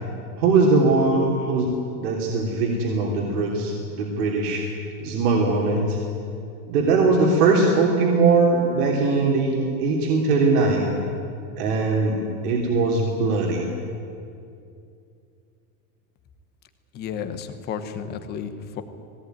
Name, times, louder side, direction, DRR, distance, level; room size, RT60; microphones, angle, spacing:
voice 1, 0.4-1.7 2.0-4.6 5.0-6.0 6.7-10.9 11.6-12.2 12.4-13.7, right 3 dB, 80° right, -1 dB, 3.3 m, -20 dB
voice 2, 16.9-18.8, left 7 dB, 20° left, 9 dB, 1.0 m, -32 dB
19.5 x 17.5 x 9.3 m, 2.5 s
supercardioid pair, 180°, 45 cm